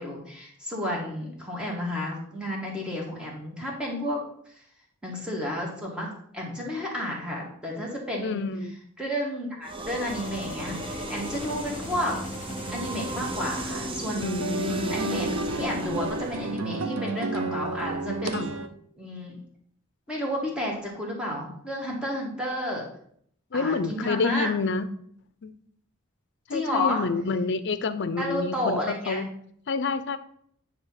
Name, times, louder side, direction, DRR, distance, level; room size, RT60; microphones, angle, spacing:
voice 1, 0.0-4.2 5.0-8.5 9.0-12.2 12.7-14.6 14.9-18.4 19.0-19.4 20.1-22.9 23.5-24.5 26.5-27.0 28.2-29.2, left 1 dB, 5° right, -3 dB, 1.9 m, -31 dB
voice 2, 8.2-8.7 14.1-15.0 18.3-18.5 23.5-24.9 25.4-25.6 26.5-29.3 29.7-30.2, left 4 dB, 55° left, 12 dB, 0.6 m, -28 dB
sound 1, 9.6-16.6, right 1 dB, 25° right, 0.6 m, -35 dB
sound 2, 10.1-14.1, left 2 dB, 40° left, 1.5 m, -41 dB
sound 3, 13.7-18.7, right 3 dB, 90° right, 0.8 m, -32 dB
9.4 x 3.3 x 5.8 m, 0.64 s
head